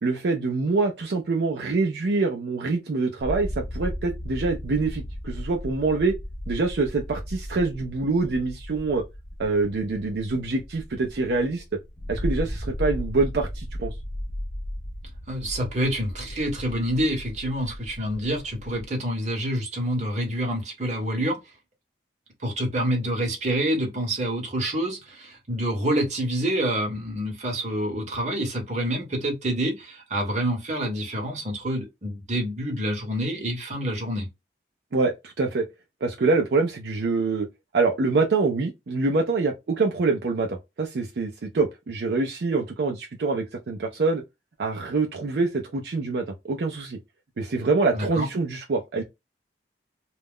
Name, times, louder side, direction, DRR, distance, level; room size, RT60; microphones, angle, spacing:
voice 1, 0.0-6.1 6.5-9.0 9.4-11.6 12.1-13.9 34.9-35.6 36.0-37.5 37.7-44.2 44.6-47.0 47.4-49.0, right 3 dB, 65° right, 0.4 m, -25 dB
sound 1, 3.2-18.9, equal, 30° left, 0.5 m, -35 dB
voice 2, 15.3-21.4 22.4-34.3 47.9-48.3, right 1 dB, 40° right, 0.9 m, -27 dB
2.3 x 2.1 x 3.4 m
head